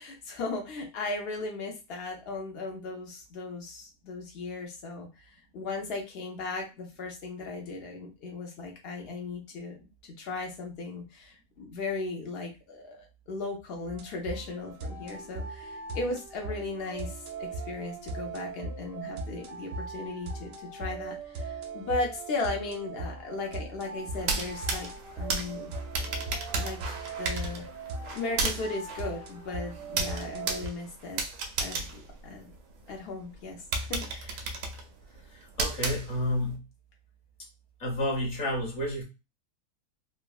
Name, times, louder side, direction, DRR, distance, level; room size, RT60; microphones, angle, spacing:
voice 1, 0.0-24.9 25.2-25.7 26.6-26.8 27.2-27.7 28.1-31.2 31.6-32.5 32.9-33.6 33.9-34.4, left 3 dB, 85° left, 1 dB, 0.5 m, -37 dB
sound 1, 13.9-30.7, right 3 dB, 70° right, 0.8 m, -39 dB
sound 2, 24.1-32.9 33.3-33.4 33.7-36.5, right 3 dB, 90° right, 1.2 m, -34 dB
voice 2, 35.3-36.6 37.8-39.0, left 1 dB, 35° left, -1 dB, 0.8 m, -30 dB
3.4 x 2.0 x 2.3 m, 0.28 s
omnidirectional pair, 1.8 m